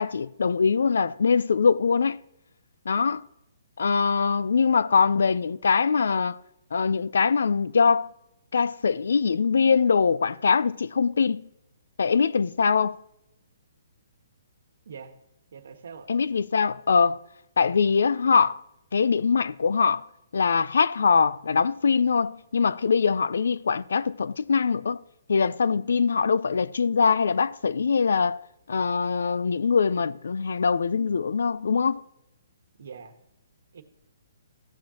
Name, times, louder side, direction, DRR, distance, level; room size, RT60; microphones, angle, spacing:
voice 1, 0.0-2.2 2.9-3.2 3.8-6.4 6.7-8.1 8.5-11.4 12.0-13.0 16.1-17.2 17.6-18.6 18.9-20.1 20.3-25.0 25.3-28.4 28.7-32.0, left 5 dB, 75° left, 0.4 m, -23 dB
voice 2, 15.5-16.1 32.8-33.1 33.7-33.8, right 6 dB, 60° right, 1.3 m, -43 dB
14.0 x 8.8 x 2.8 m
hypercardioid pair, 180°, 0 cm